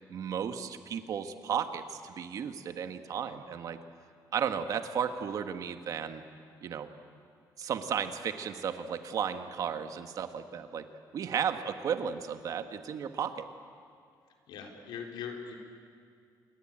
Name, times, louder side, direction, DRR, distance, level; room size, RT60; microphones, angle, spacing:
voice 1, 0.1-3.8 4.3-6.2 6.6-6.9 7.6-10.9 11.1-13.5, right 7 dB, 50° right, 8 dB, 1.6 m, -34 dB
voice 2, 14.5-15.5, left 7 dB, 85° left, 3 dB, 4.0 m, -40 dB
27.5 x 22.0 x 8.9 m, 2.2 s
cardioid pair, 160°, 7 cm